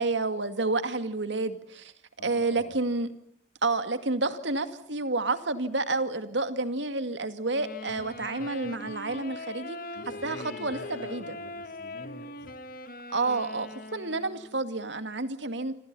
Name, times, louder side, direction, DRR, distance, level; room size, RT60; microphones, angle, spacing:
voice 1, 0.0-1.9 2.2-3.1 3.6-9.8 10.2-11.2 13.1-15.7, right 3 dB, 85° right, 10 dB, 2.3 m, -29 dB
voice 2, 2.2-2.8 7.9-8.1 8.4-8.9 9.9-12.6, left 1 dB, 80° left, 4 dB, 3.7 m, -45 dB
Wind instrument woodwind instrument, 7.5-14.7, left 2 dB, 50° left, 2.3 m, -41 dB
28.0 x 27.0 x 5.6 m, 0.66 s
head